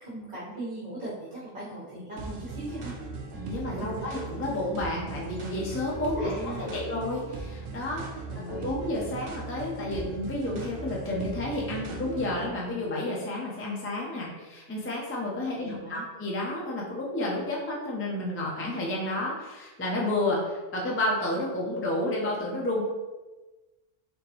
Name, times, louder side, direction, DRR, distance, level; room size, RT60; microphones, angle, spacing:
voice 1, 0.0-2.9 3.7-3.9 6.2-6.9 8.3-8.7 15.6-16.0, right 1 dB, 45° right, -9 dB, 1.2 m, -39 dB
sound 1, 2.2-12.5, right 3 dB, 75° right, 1.0 m, -39 dB
voice 2, 3.3-22.8, left 1 dB, 15° left, -3 dB, 0.5 m, -31 dB
3.9 x 3.6 x 3.0 m, 1.2 s
omnidirectional pair, 1.3 m